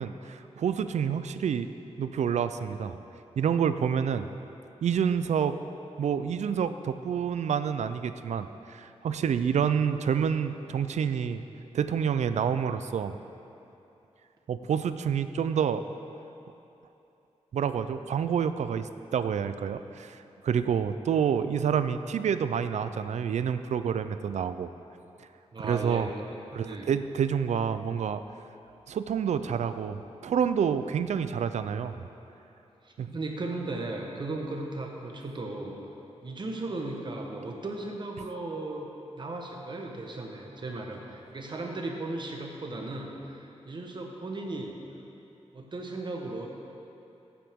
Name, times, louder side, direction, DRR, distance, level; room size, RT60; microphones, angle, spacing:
voice 1, 0.0-1.7 2.0-3.0 3.4-4.3 4.8-5.6 6.0-11.4 11.7-13.2 14.5-15.8 17.5-20.2 20.4-24.7 25.6-26.1 26.5-28.2 28.9-32.1 33.0-33.1, right 7 dB, 80° right, 11 dB, 0.4 m, -28 dB
voice 2, 25.5-26.1 26.5-26.9 32.8-35.8 36.2-38.9 39.2-44.8 45.5-46.5, right 2 dB, 40° right, 1 dB, 1.1 m, -36 dB
15.0 x 8.6 x 3.6 m, 2.9 s
wide cardioid pair, 140°, 12 cm